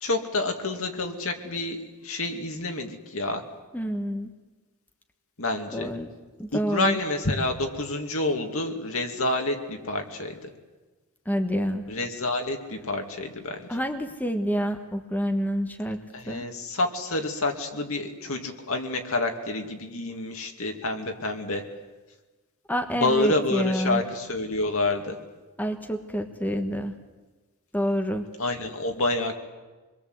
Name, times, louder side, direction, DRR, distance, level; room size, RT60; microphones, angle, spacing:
voice 1, 0.0-3.4 5.4-5.9 6.5-10.4 11.9-13.6 16.1-21.6 22.9-25.2 28.4-29.4, left 2 dB, 65° left, 4 dB, 2.5 m, -28 dB
voice 2, 3.7-4.3 5.7-6.1 6.4-7.0 11.2-11.9 13.7-16.5 22.7-24.0 25.6-26.9 27.7-28.3, equal, 5° left, 4 dB, 1.3 m, -28 dB
26.0 x 22.0 x 8.1 m, 1.2 s
head